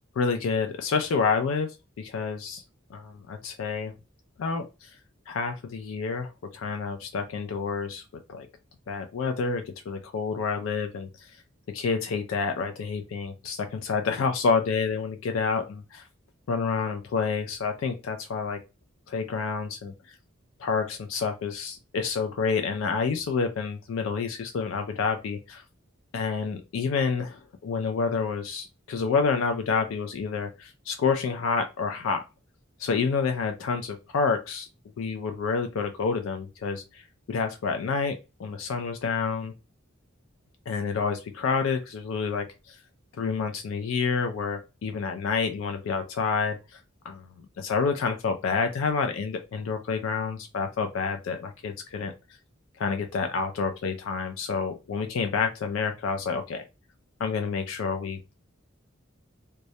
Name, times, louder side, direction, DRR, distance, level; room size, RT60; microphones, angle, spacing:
voice 1, 0.2-1.7 2.0-2.6 2.9-3.9 4.4-4.9 5.3-8.0 8.3-8.5 8.9-11.3 11.7-16.0 16.5-18.6 19.1-19.9 20.6-25.6 26.1-32.2 32.8-34.7 35.0-37.0 37.3-39.5 40.7-42.8 43.2-46.8 47.0-47.3 47.6-52.1 52.8-56.6 57.2-58.4, left 5 dB, 80° left, 6 dB, 0.4 m, -28 dB
2.3 x 2.0 x 2.7 m, 0.27 s
head